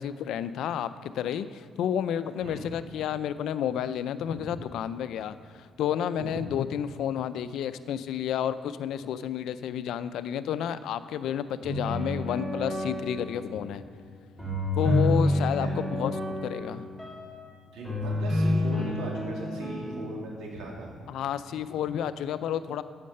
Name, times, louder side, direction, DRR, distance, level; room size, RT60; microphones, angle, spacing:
voice 1, 0.0-13.8 14.8-16.1 16.4-16.9 21.1-22.8, left 9 dB, 80° left, 14 dB, 0.4 m, -31 dB
sound 1, 11.6-13.7 14.4-17.3 17.8-20.3, left 1 dB, ahead, 2.5 m, -29 dB
voice 2, 17.7-20.9 21.8-21.9, right 2 dB, 85° right, -2 dB, 2.3 m, -39 dB
8.4 x 6.5 x 6.6 m, 2.3 s
cardioid pair, 90°, 0 cm